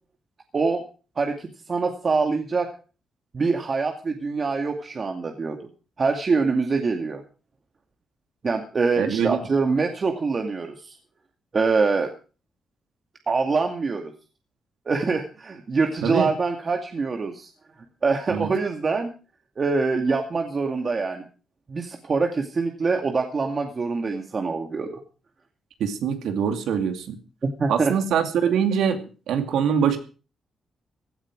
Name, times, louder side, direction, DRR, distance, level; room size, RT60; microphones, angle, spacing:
voice 1, 1.2-2.7 3.3-5.6 6.0-7.2 8.4-11.0 11.5-12.1 13.3-14.1 14.9-17.5 18.0-19.1 19.6-21.2 21.7-25.0 27.4-27.9, right 4 dB, 40° right, 4 dB, 2.3 m, -24 dB
voice 2, 9.0-9.4 16.0-16.3 18.3-18.5 25.8-27.2 27.7-30.0, right 7 dB, 85° right, 7 dB, 2.4 m, -23 dB
16.5 x 12.5 x 4.8 m, 0.36 s
cardioid pair, 80°, 0 cm